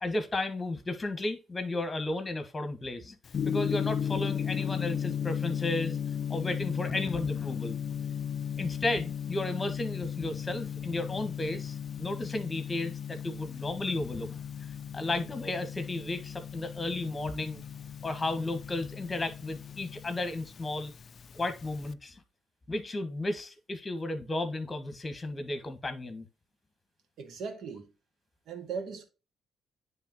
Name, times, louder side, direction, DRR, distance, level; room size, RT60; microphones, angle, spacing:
voice 1, 0.0-3.2 3.4-6.0 6.3-7.8 8.6-14.4 14.9-17.6 18.0-20.9 21.3-22.2 22.7-26.3, left 2 dB, 25° left, 1.4 m, -33 dB
Gong, 3.3-21.9, left 8 dB, 50° left, 0.3 m, -35 dB
voice 2, 27.2-27.9 28.5-29.0, right 5 dB, 75° right, 1.7 m, -38 dB
10.0 x 3.4 x 2.9 m
cardioid pair, 90°, 0 cm